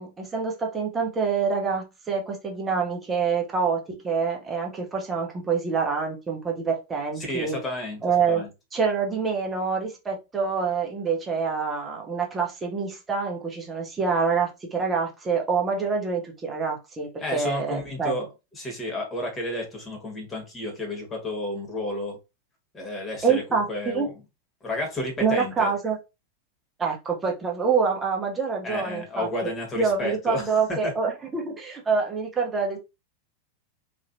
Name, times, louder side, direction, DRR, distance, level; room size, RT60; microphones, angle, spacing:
voice 1, 0.0-7.6 8.0-8.4 8.7-18.1 23.2-24.1 25.2-26.0 26.8-29.5 29.7-32.8, right 5 dB, 15° right, 1.0 m, -26 dB
voice 2, 7.2-8.0 8.3-8.5 17.2-18.3 18.5-22.2 22.7-24.1 24.6-25.7 28.6-30.9, left 1 dB, 20° left, 1.5 m, -31 dB
3.1 x 2.8 x 2.7 m
figure-of-eight pair, 90°, 0 cm